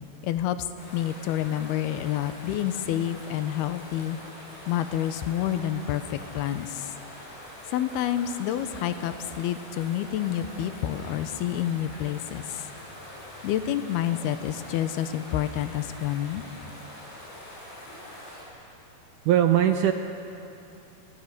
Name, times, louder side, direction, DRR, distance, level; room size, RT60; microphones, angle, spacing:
voice 1, 0.2-0.7 0.9-4.2 4.7-6.9 7.7-12.7 13.4-16.4, left 11 dB, 85° left, 11 dB, 2.9 m, -28 dB
sound 1, 0.8-18.4, left 1 dB, 70° left, 9.1 m, -44 dB
voice 2, 19.3-19.9, right 11 dB, 75° right, 6 dB, 1.9 m, -20 dB
29.5 x 23.5 x 6.7 m, 2.9 s
omnidirectional pair, 4.5 m